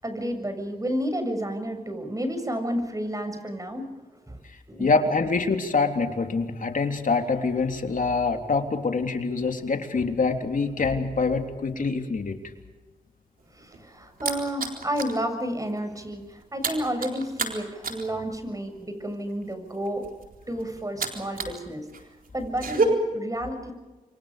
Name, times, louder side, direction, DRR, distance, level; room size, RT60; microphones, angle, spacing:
voice 1, 0.0-3.9 4.3-4.4 4.7-4.9 13.5-20.1 20.5-21.9 22.3-23.7, equal, 20° right, 6 dB, 7.4 m, -31 dB
voice 2, 4.8-12.4, left 4 dB, 60° left, 5 dB, 3.4 m, -25 dB
sound 1, 13.4-15.2 15.6-21.6 21.9-22.9, right 4 dB, 65° right, 4.1 m, -31 dB
28.5 x 24.5 x 5.2 m, 1.2 s
cardioid pair, 45°, 16 cm